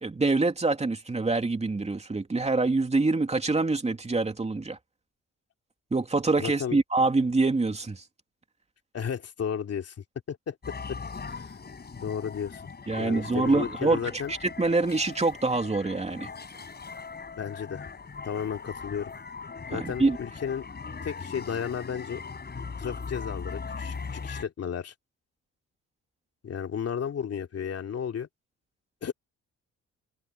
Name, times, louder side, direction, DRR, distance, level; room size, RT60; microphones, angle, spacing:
voice 1, 0.0-4.8 5.9-8.0 12.9-16.3 19.7-20.2, right 3 dB, 20° right, 2.9 m, -25 dB
voice 2, 6.4-6.8 8.9-9.9 10.3-10.6 10.9-11.0 11.3-11.5 12.0-12.6 12.9-14.3 17.4-17.9 18.2-19.1 19.7-20.7 21.0-22.2 22.8-24.9 26.4-28.3 29.0-29.1, left 7 dB, 55° left, 2.8 m, -33 dB
sound 1, 10.6-24.4, left 5 dB, 35° left, 5.9 m, -39 dB
cardioid pair, 90°, 30 cm